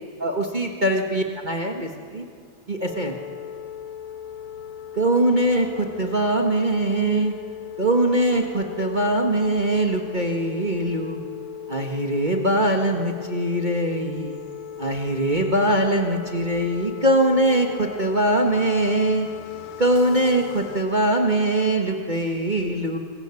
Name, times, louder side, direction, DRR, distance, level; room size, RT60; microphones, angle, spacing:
voice 1, 0.2-2.2 2.7-3.2 4.9-7.4 7.8-11.2 11.7-14.4 14.8-19.3 19.8-23.0, right 1 dB, 25° right, 2 dB, 1.0 m, -22 dB
sound 1, 2.9-20.8, left 9 dB, 80° left, 2.1 m, -38 dB
26.5 x 23.0 x 7.1 m, 2.1 s
omnidirectional pair, 3.3 m